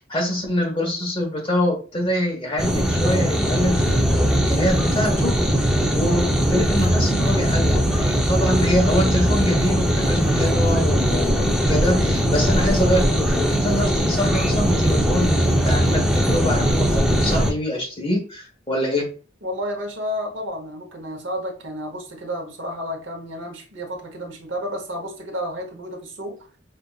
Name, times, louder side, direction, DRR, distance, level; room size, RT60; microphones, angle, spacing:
voice 1, 0.0-5.7 5.9-19.1, equal, 30° left, 1.1 m, -25 dB
sound 1, 2.6-17.5, equal, 5° right, 0.5 m, -20 dB
voice 2, 19.4-26.4, equal, 75° right, 1.0 m, -31 dB
5.2 x 2.5 x 2.4 m
head